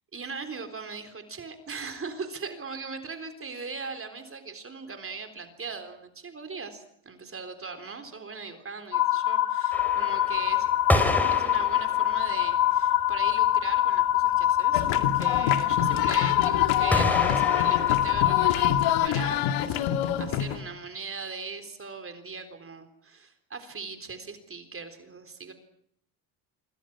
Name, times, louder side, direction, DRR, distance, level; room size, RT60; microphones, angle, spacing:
voice 1, 0.1-10.7 11.3-25.5, right 4 dB, 25° right, 8 dB, 3.8 m, -40 dB
sound 1, 8.9-19.1, left 13 dB, 40° left, 1.7 m, -24 dB
sound 2, 9.7-12.5 13.1-13.2 13.4-13.5 13.8-13.9 14.1-14.6 16.9-18.8, left 1 dB, 5° left, 4.4 m, -29 dB
sound 3, 14.7-20.6, left 9 dB, 90° left, 2.4 m, -28 dB
26.5 x 24.5 x 6.1 m, 0.72 s
cardioid pair, 120°, 47 cm